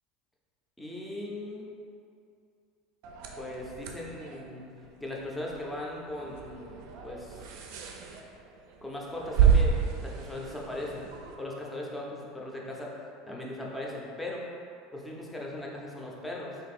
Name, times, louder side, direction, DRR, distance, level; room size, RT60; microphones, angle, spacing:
voice 1, 0.8-1.7 3.4-4.6 5.0-7.4 8.8-11.1 11.4-13.0 13.3-14.4 14.9-16.6, left 1 dB, 10° left, -3 dB, 0.6 m, -38 dB
sound 1, 3.0-11.4, right 7 dB, 70° right, 0.4 m, -30 dB
3.0 x 2.6 x 4.1 m, 2.5 s
supercardioid pair, 130°, 0 cm